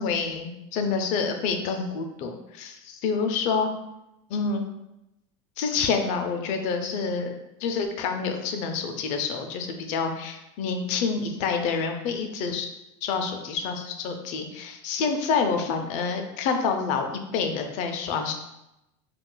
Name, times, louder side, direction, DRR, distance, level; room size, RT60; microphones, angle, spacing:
voice 1, 0.0-3.7 4.3-4.6 5.6-7.3 7.6-12.7 13.0-18.3, left 5 dB, 55° left, 5 dB, 0.5 m, -27 dB
2.4 x 2.2 x 3.7 m, 0.90 s
supercardioid pair, 130°, 15 cm